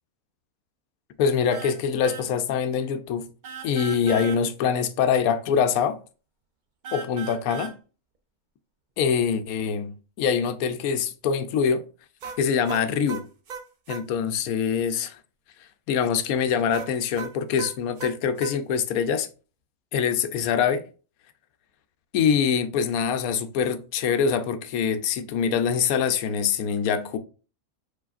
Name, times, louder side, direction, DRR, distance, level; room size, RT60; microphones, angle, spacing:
voice 1, 1.2-3.3 3.6-6.0 6.9-7.7 9.0-11.8 12.4-13.3 13.9-15.2 15.9-19.3 19.9-20.8 22.1-27.2, left 7 dB, 85° left, 1.1 m, -24 dB
sound 1, 1.5-1.8 2.0-2.3 3.4-4.4 6.8-7.8 12.2-14.1 16.7-18.6, right 6 dB, 55° right, 0.5 m, -37 dB
4.7 x 4.5 x 2.5 m
omnidirectional pair, 1.5 m